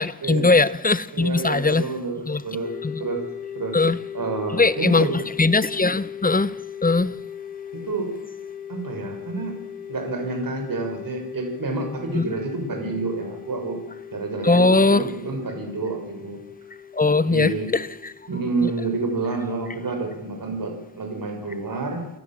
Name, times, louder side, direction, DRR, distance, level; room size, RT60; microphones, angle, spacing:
voice 1, 0.0-1.9 2.3-2.4 2.8-3.0 3.7-4.0 4.5-6.6 6.8-7.2 12.1-12.3 14.4-15.1 16.9-18.1 18.6-18.7, left 3 dB, 20° left, 0.9 m, -20 dB
voice 2, 1.1-2.7 3.0-3.2 3.5-3.7 4.1-5.2 7.7-8.1 8.7-9.6 9.9-13.8 14.1-16.4 17.2-17.7 18.3-22.1, right 3 dB, 60° right, 6.2 m, -28 dB
sound 1, 2.6-20.0, left 9 dB, 85° left, 4.6 m, -39 dB
28.0 x 18.0 x 7.5 m
wide cardioid pair, 130°, 38 cm